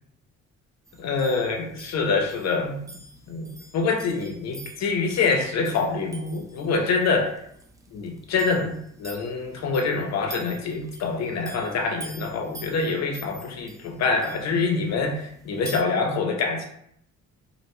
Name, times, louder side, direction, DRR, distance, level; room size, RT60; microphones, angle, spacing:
sound 1, 0.9-15.8, right 1 dB, 10° right, 0.4 m, -47 dB
voice 1, 1.0-2.8 3.3-7.4 7.9-16.7, left 4 dB, 60° left, 2 dB, 0.6 m, -25 dB
2.6 x 2.0 x 3.0 m, 0.71 s
cardioid pair, 90°, 30 cm